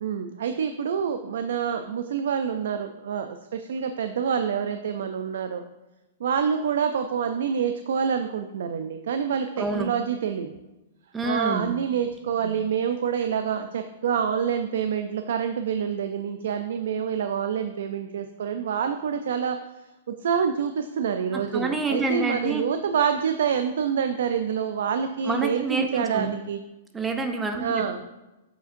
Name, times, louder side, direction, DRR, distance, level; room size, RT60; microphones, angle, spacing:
voice 1, 0.0-5.6 6.2-10.5 11.2-19.6 20.2-26.6 27.6-28.0, right 7 dB, 70° right, 7 dB, 0.4 m, -27 dB
voice 2, 9.6-9.9 11.1-11.7 21.3-22.6 25.2-26.3 26.9-28.0, right 3 dB, 10° right, 5 dB, 0.5 m, -28 dB
7.8 x 5.0 x 2.6 m, 1.0 s
hypercardioid pair, 160°, 0 cm